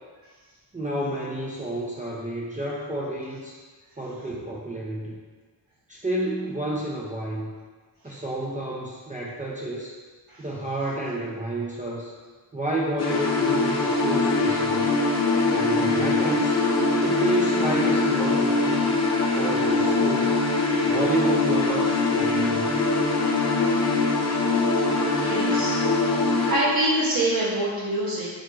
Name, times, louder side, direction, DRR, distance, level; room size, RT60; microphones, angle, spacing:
voice 1, 0.7-3.6 4.0-5.2 5.9-7.5 8.0-9.9 10.4-12.1 12.5-14.9 15.5-16.6 17.0-19.0 19.4-20.3 20.8-22.8, right 1 dB, 15° right, -5 dB, 0.6 m, -30 dB
sound 1, 13.0-26.5, left 3 dB, 35° left, 0.7 m, -22 dB
voice 2, 25.1-28.3, right 1 dB, 50° right, -7 dB, 1.2 m, -26 dB
4.5 x 2.5 x 4.6 m, 1.4 s
cardioid pair, 80°, 46 cm